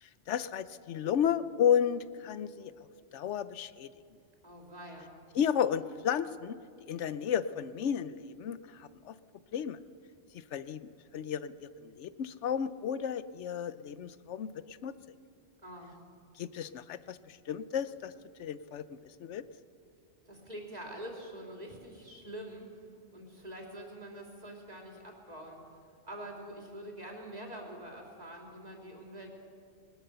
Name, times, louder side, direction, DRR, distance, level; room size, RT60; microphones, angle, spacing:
voice 1, 0.0-2.7 3.1-3.9 5.3-9.1 9.5-9.8 10.3-14.9 16.4-18.1 18.4-18.9 19.2-19.4, left 8 dB, 80° left, 15 dB, 1.0 m, -33 dB
voice 2, 4.4-5.1 15.6-16.0 20.3-22.8 23.1-25.6 26.1-29.4, right 1 dB, 35° right, 0 dB, 3.6 m, -45 dB
21.0 x 19.5 x 6.8 m, 2.4 s
omnidirectional pair, 1.2 m